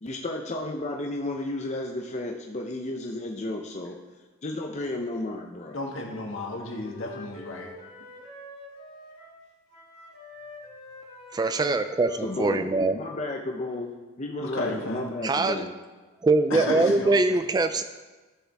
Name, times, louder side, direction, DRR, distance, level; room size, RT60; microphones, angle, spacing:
voice 1, 0.0-4.0 4.4-5.8 12.2-15.7, left 2 dB, 35° left, 1 dB, 0.7 m, -33 dB
voice 2, 5.7-7.7 14.4-15.0 16.5-17.2, left 2 dB, 65° left, -1 dB, 1.8 m, -32 dB
Wind instrument woodwind instrument, 6.3-9.4 9.7-13.6, left 2 dB, 85° left, 2.9 m, -46 dB
voice 3, 11.3-13.0 15.2-15.6 16.2-17.8, right 3 dB, 20° right, 9 dB, 0.3 m, -23 dB
15.5 x 6.9 x 3.5 m, 1.3 s
head